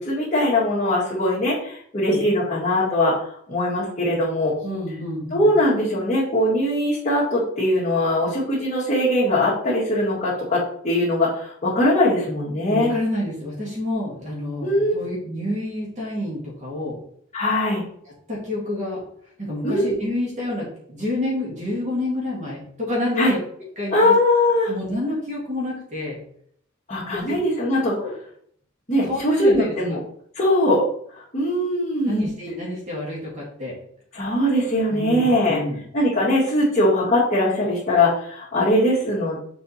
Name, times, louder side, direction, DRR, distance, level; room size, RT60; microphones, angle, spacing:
voice 1, 0.0-4.5 5.3-12.9 14.6-14.9 17.3-17.8 19.6-19.9 23.2-23.3 23.9-24.7 26.9-27.9 28.9-30.0 30.3-30.8 31.1-32.3 34.1-35.6 35.9-39.4, left 1 dB, 35° left, -9 dB, 1.9 m, -21 dB
voice 2, 4.6-5.5 12.6-17.0 18.3-19.0 19.4-23.4 23.8-24.2 24.7-26.2 27.3-27.4 28.0-28.1 29.0-29.7 32.1-33.8 34.9-35.8, left 1 dB, 35° right, -4 dB, 2.0 m, -28 dB
6.8 x 4.1 x 4.2 m, 0.66 s
head